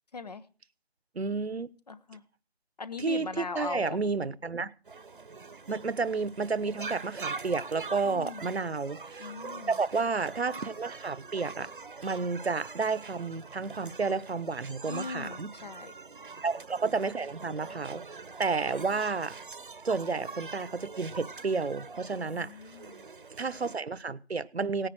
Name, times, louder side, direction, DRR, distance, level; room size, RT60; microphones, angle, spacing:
voice 1, 0.1-0.4 1.9-2.2 2.8-4.0 8.0-8.5 9.2-9.7 14.9-15.9 22.2-23.0, left 4 dB, 40° left, 1.2 m, -39 dB
voice 2, 1.1-1.7 3.0-4.7 5.7-9.3 9.7-11.7 12.0-15.5 16.4-18.0 18.4-19.4 19.8-22.6 23.3-24.9, right 4 dB, 80° right, 1.2 m, -31 dB
sound 1, 4.9-23.8, right 4 dB, 55° right, 1.1 m, -44 dB
18.0 x 10.0 x 6.3 m
figure-of-eight pair, 170°, 32 cm